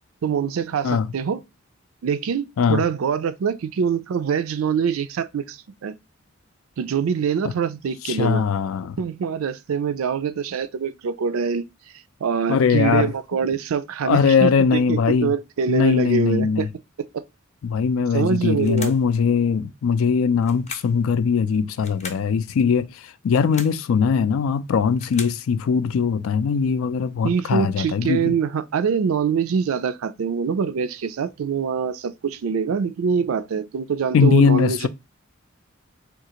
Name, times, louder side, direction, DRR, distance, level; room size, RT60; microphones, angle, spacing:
voice 1, 0.2-1.4 2.0-5.9 6.8-8.4 9.0-11.7 12.2-16.6 18.1-18.9 27.2-34.9, right 6 dB, 85° right, 0.4 m, -24 dB
voice 2, 8.1-9.0 12.5-13.1 14.0-15.3 15.7-16.7 17.6-28.4 34.1-34.9, left 6 dB, 80° left, 0.4 m, -20 dB
sound 1, 18.6-19.1 20.4-21.0 21.8-22.3 23.2-23.8 24.7-25.4, left 5 dB, 35° left, 0.6 m, -38 dB
3.6 x 2.4 x 2.8 m
head